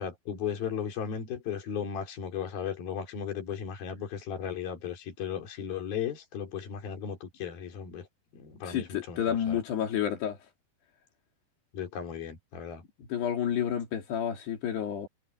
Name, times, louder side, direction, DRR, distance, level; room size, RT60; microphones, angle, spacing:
voice 1, 0.0-8.1 8.3-9.6 11.7-12.8, left 8 dB, 65° left, 5.5 m, -36 dB
voice 2, 8.6-10.4 13.1-15.1, left 9 dB, 85° left, 5.0 m, -30 dB
omnidirectional pair, 4.6 m